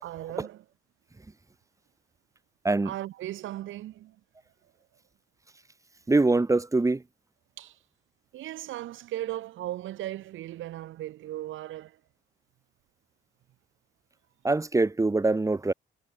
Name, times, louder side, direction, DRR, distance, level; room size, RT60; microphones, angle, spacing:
voice 1, 0.0-0.6 2.8-4.2 7.6-7.8 8.3-12.0, right 14 dB, 80° right, 1.1 m, -37 dB
voice 2, 6.1-7.0 14.4-15.7, right 2 dB, 15° right, 1.1 m, -23 dB
cardioid pair, 90°, 20 cm